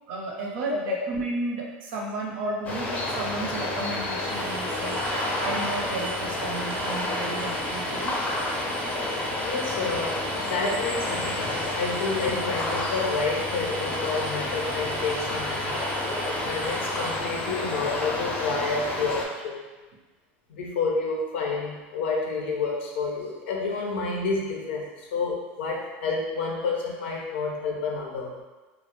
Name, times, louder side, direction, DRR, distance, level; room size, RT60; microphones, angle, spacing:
voice 1, 0.1-5.0 5.4-8.2, right 3 dB, 80° right, -1 dB, 0.6 m, -33 dB
sound 1, 2.6-19.2, left 1 dB, 25° left, 0.5 m, -30 dB
sound 2, 4.3-17.1, right 3 dB, 35° right, 0.4 m, -40 dB
voice 2, 9.4-15.8 16.4-19.6 20.5-28.3, left 4 dB, 90° left, -1 dB, 0.5 m, -29 dB
2.3 x 2.0 x 3.0 m, 1.2 s
supercardioid pair, 115°, 6 cm